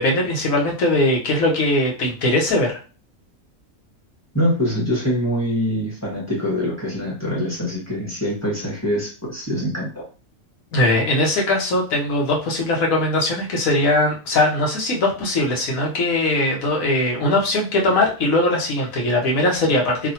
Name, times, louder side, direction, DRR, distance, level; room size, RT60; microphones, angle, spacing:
voice 1, 0.0-2.8 10.7-20.1, left 1 dB, 80° left, -1 dB, 1.4 m, -20 dB
voice 2, 4.3-10.0, equal, 10° left, -4 dB, 1.2 m, -24 dB
3.2 x 2.5 x 2.7 m, 0.34 s
omnidirectional pair, 1.4 m